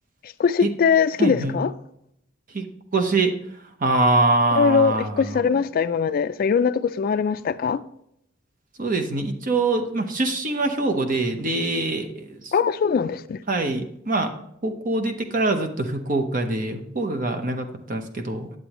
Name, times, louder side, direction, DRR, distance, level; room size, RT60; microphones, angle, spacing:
voice 1, 0.4-1.7 4.6-7.8 12.5-13.4, left 6 dB, 50° left, 0.3 m, -21 dB
voice 2, 1.2-1.6 2.5-2.6 2.9-3.3 3.8-5.4 8.8-12.5 13.5-14.3 14.6-18.5, right 2 dB, 45° right, 0.9 m, -24 dB
9.6 x 7.6 x 3.0 m
head